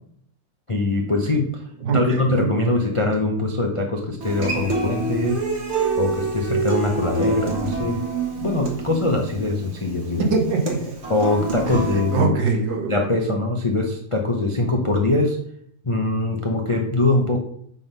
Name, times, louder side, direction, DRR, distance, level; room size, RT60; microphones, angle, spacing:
voice 1, 0.7-1.6 1.9-5.4 5.9-8.0 8.4-10.3 11.1-12.4 12.9-15.4 15.8-17.4, left 2 dB, 55° left, 1 dB, 0.3 m, -22 dB
voice 2, 1.8-2.2 10.3-10.9 11.7-12.9, right 4 dB, 70° right, 1 dB, 2.0 m, -22 dB
Human voice / Acoustic guitar, 4.2-12.2, right 3 dB, 40° right, 1.5 m, -26 dB
7.6 x 3.7 x 5.4 m, 0.67 s
omnidirectional pair, 2.0 m